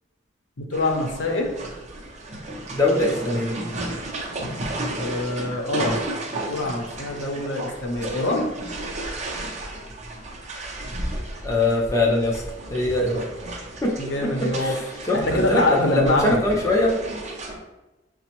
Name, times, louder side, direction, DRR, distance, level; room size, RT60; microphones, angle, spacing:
voice 1, 0.6-1.5 5.0-6.0 6.4-8.5 14.0-14.7 15.1-16.4, left 2 dB, 70° left, 2 dB, 0.6 m, -24 dB
sound 1, 0.7-17.6, right 1 dB, 40° right, 0.5 m, -33 dB
voice 2, 2.7-3.6 11.4-12.4 12.7-13.3 13.8-17.0, left 2 dB, 15° left, -2 dB, 0.4 m, -22 dB
5.9 x 2.0 x 2.9 m, 1.0 s
head